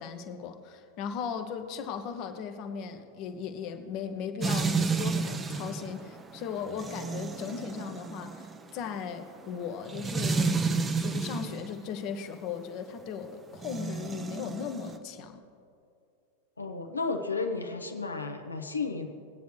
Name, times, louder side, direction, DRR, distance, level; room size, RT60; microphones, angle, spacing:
voice 1, 0.0-8.5 8.7-10.6 11.0-15.4, left 7 dB, 40° left, 7 dB, 1.0 m, -37 dB
sound 1, 4.4-11.7 13.5-15.0, right 4 dB, 20° right, 0.7 m, -31 dB
voice 2, 16.6-19.1, left 4 dB, 80° left, 5 dB, 1.1 m, -33 dB
21.0 x 9.2 x 3.3 m, 2.5 s
figure-of-eight pair, 90°, 0 cm